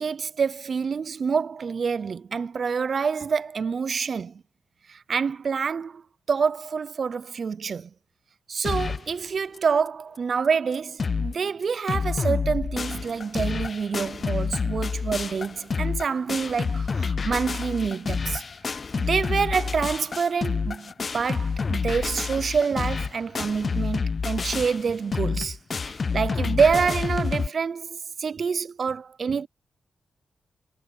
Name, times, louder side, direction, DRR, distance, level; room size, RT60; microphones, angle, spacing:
voice 1, 0.0-4.4 4.9-6.0 6.3-7.9 8.5-18.4 18.7-25.6 25.9-29.5, right 5 dB, 45° right, 0.4 m, -27 dB
sound 1, 8.6-9.1 9.6-9.7 9.9-10.0 10.4-10.5 10.7-11.3 11.6-27.5, left 5 dB, 35° left, 0.4 m, -28 dB
wide cardioid pair, 150°, 0 cm